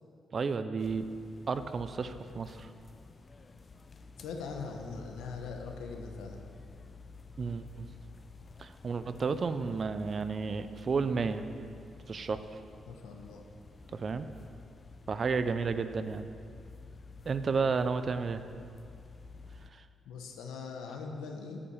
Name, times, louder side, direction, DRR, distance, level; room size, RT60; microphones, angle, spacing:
voice 1, 0.3-1.1 1.5-2.7 7.4-7.9 8.6-11.4 12.1-12.4 13.9-14.2 15.1-16.2 17.3-18.4 19.7-19.8, right 5 dB, 50° right, 11 dB, 0.5 m, -32 dB
sound 1, 0.8-19.7, left 3 dB, 40° left, 0.5 m, -51 dB
voice 2, 4.2-6.4 12.9-13.5 17.5-17.7 20.0-21.6, left 4 dB, 90° left, 2 dB, 1.0 m, -41 dB
8.5 x 5.5 x 7.0 m, 2.4 s
cardioid pair, 70°, 0 cm